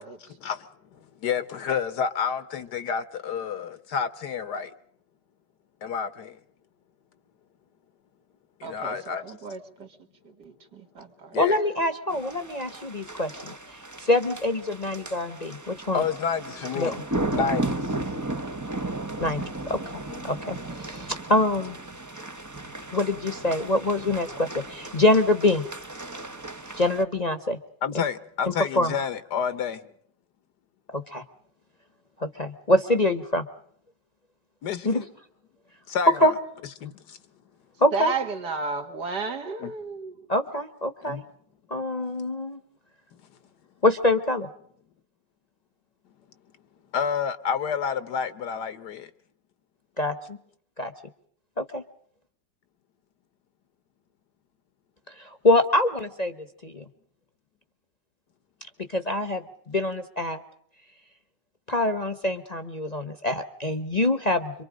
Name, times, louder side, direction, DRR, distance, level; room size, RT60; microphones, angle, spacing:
voice 1, 0.2-4.7 5.8-6.4 8.6-9.4 11.3-11.6 15.9-17.0 17.3-17.9 20.1-20.2 27.8-29.9 34.6-35.0 35.9-36.3 36.8-37.2 39.6-39.7 41.0-41.2 46.9-49.1, left 7 dB, 65° left, 1.6 m, -29 dB
voice 2, 8.6-9.9 10.4-11.4 37.9-40.1, right 4 dB, 65° right, 2.4 m, -33 dB
voice 3, 11.4-13.5 14.0-16.0 16.8-16.9 19.2-21.8 22.9-25.6 26.7-27.6 27.9-28.0 28.7-28.9 30.9-31.2 32.2-33.5 34.8-35.0 36.2-36.3 37.8-38.1 40.3-41.2 41.7-42.6 43.8-44.5 50.0-50.4 50.8-50.9 51.6-51.8 55.1-56.8 58.8-60.4 61.7-64.6, left 1 dB, 25° left, 1.1 m, -25 dB
sound 1, 12.1-27.0, right 2 dB, 15° right, 0.6 m, -35 dB
26.5 x 24.0 x 5.1 m
omnidirectional pair, 1.9 m